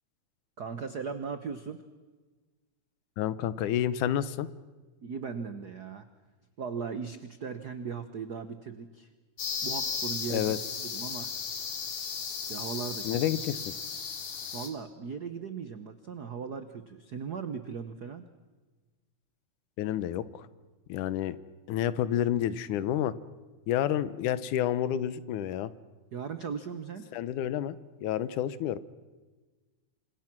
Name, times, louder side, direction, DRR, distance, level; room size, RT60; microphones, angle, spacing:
voice 1, 0.6-1.8 5.0-6.1 6.6-9.1 9.6-10.5 10.8-11.3 12.5-13.2 14.5-18.3 26.1-27.1, right 6 dB, 85° right, 10 dB, 0.8 m, -38 dB
voice 2, 3.2-4.5 10.3-10.6 13.0-13.7 19.8-20.5 20.9-21.4 21.7-23.1 23.7-25.7 27.1-27.8 28.0-28.8, left 11 dB, 90° left, 16 dB, 2.4 m, -29 dB
sound 1, 9.4-14.7, left 6 dB, 70° left, 3.7 m, -35 dB
28.0 x 26.5 x 6.0 m, 1.3 s
omnidirectional pair, 3.4 m